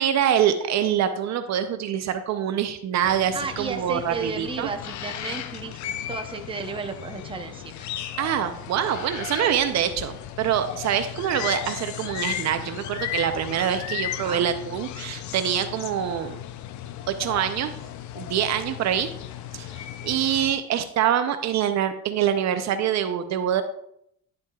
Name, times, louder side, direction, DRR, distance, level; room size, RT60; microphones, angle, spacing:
voice 1, 0.0-4.7 5.2-5.4 8.2-16.4 17.1-17.8 18.2-19.1 19.5-23.6, right 9 dB, 55° right, 8 dB, 0.6 m, -25 dB
sound 1, 3.0-20.5, left 11 dB, 60° left, 0.5 m, -35 dB
voice 2, 3.3-5.8 6.1-7.7 14.2-14.4, right 5 dB, 15° right, 5 dB, 0.7 m, -33 dB
10.5 x 7.7 x 2.3 m, 0.72 s
cardioid pair, 140°, 33 cm